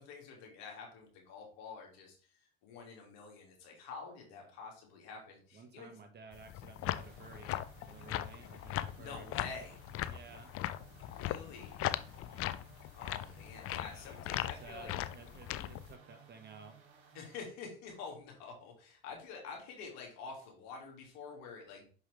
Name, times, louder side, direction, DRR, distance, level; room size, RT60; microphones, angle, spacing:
voice 1, 0.0-5.9 9.0-9.8 11.1-11.8 12.9-14.9 17.1-21.9, left 5 dB, 65° left, 1 dB, 2.5 m, -48 dB
voice 2, 5.5-9.4 10.1-10.5 12.2-12.5 13.9-16.7, right 4 dB, 35° right, 6 dB, 1.5 m, -54 dB
sound 1, 6.3-15.9, left 14 dB, 50° left, 0.6 m, -39 dB
sound 2, 6.9-17.4, right 7 dB, 70° right, 2.9 m, -59 dB
6.2 x 5.5 x 3.4 m, 0.40 s
hypercardioid pair, 70°, 29 cm